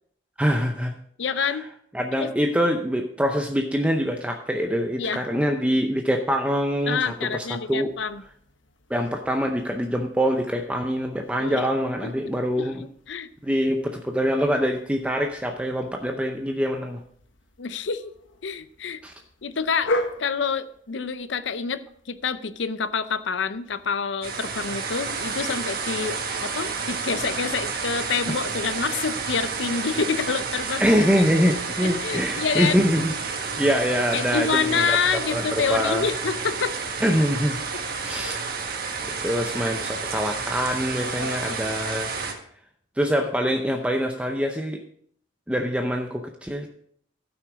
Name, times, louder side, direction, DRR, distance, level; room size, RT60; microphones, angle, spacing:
voice 1, 0.4-0.9 1.4-1.6 1.9-7.9 8.9-12.8 13.4-17.0 19.0-19.1 28.3-28.4 30.8-33.1 33.6-35.0 35.3-36.0 37.0-37.6 38.0-38.4 39.2-42.1 43.0-44.8 45.5-46.7, equal, 5° right, 3 dB, 0.6 m, -24 dB
voice 2, 1.2-1.7 2.2-2.3 5.0-5.2 6.9-8.2 11.4-11.6 12.0-12.3 12.6-13.3 17.6-18.1 18.4-19.0 19.4-19.9 20.2-31.0 31.8-32.9 34.1-36.7 38.1-38.4 41.1-41.6, left 5 dB, 70° left, 14 dB, 0.6 m, -27 dB
sound 1, 6.9-24.9, left 1 dB, 90° left, 1.2 m, -40 dB
sound 2, 24.2-42.3, right 5 dB, 55° right, 1.5 m, -30 dB
13.5 x 6.0 x 4.8 m, 0.63 s
head